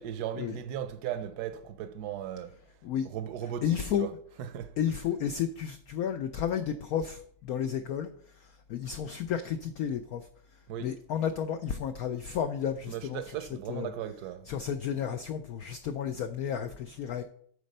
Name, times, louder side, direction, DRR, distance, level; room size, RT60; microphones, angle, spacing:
voice 1, 0.0-2.5 3.1-3.6 4.0-4.1 4.4-4.7 10.7-10.9 12.9-14.5, right 10 dB, 65° right, 1.1 m, -37 dB
voice 2, 3.6-4.1 4.8-10.3 10.8-13.4 13.7-13.9 14.5-17.2, left 8 dB, 90° left, 0.7 m, -32 dB
8.2 x 4.3 x 6.5 m
omnidirectional pair, 2.1 m